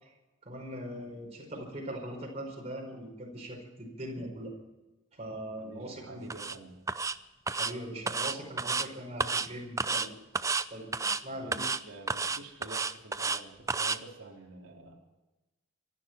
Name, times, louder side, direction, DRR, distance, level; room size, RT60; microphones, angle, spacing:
voice 1, 0.4-4.5 5.1-6.2 7.5-10.1 10.7-11.7, right 1 dB, 30° right, -1 dB, 4.8 m, -41 dB
voice 2, 5.6-6.8 11.4-15.0, right 2 dB, 85° right, -1 dB, 3.7 m, -48 dB
sound 1, 6.3-6.6 6.9-7.2 7.5-7.7 8.1-8.9 9.2-9.5 9.8-10.1 10.4-10.7 10.9-11.2 11.5-11.8 12.1-13.4 13.7-14.0, right 4 dB, 15° right, 0.5 m, -31 dB
26.0 x 11.5 x 4.6 m, 1.1 s
head